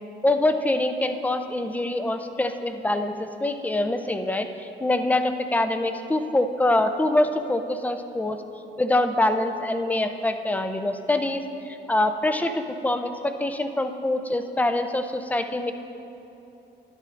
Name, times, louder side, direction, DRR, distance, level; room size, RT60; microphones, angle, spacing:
voice 1, 0.2-8.4 8.8-15.7, left 1 dB, 10° left, 8 dB, 0.5 m, -25 dB
12.5 x 10.5 x 2.5 m, 2.9 s
cardioid pair, 90°, 20 cm